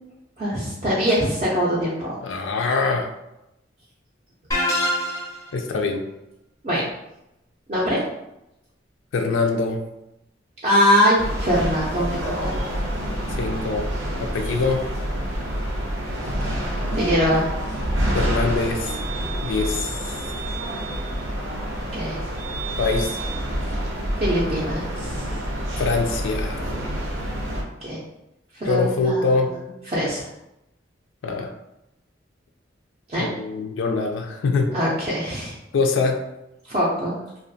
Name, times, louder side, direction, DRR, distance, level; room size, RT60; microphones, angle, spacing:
voice 1, 0.4-2.2 6.6-6.8 7.7-8.0 10.6-12.1 12.4-12.6 16.9-17.5 21.9-22.2 24.2-25.4 27.8-28.0 28.5-29.6 29.9-30.3 33.1-33.3 34.7-35.5 36.7-37.2, equal, 35° right, -7 dB, 0.4 m, -22 dB
voice 2, 2.2-3.1 5.5-6.0 9.1-9.8 13.4-13.9 14.2-14.9 18.1-19.0 19.4-20.1 22.8-23.2 25.8-26.7 28.6-29.5 31.2-31.5 33.2-34.7 35.7-36.2, left 4 dB, 75° left, 4 dB, 0.3 m, -23 dB
sound 1, 4.5-5.5, left 1 dB, 20° left, 0.5 m, -24 dB
sound 2, 11.2-27.6, right 1 dB, 80° right, 0.6 m, -27 dB
2.4 x 2.2 x 2.6 m, 0.89 s
head